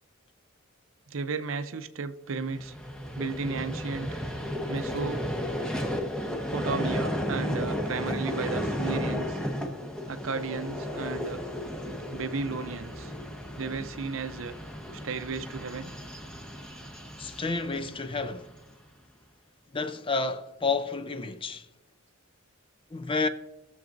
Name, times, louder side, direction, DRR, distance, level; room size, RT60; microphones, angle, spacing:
voice 1, 1.1-2.7 3.2-4.1 4.7-5.3 6.5-9.4 10.1-11.4 12.1-13.1 13.6-14.6 14.9-15.9, right 4 dB, 70° right, 0.6 m, -34 dB
Vehicle, 2.4-18.7, equal, 5° left, 1.0 m, -34 dB
voice 2, 17.2-18.6 19.7-21.7 22.9-23.3, left 3 dB, 25° left, 0.5 m, -30 dB
18.5 x 7.0 x 2.6 m
head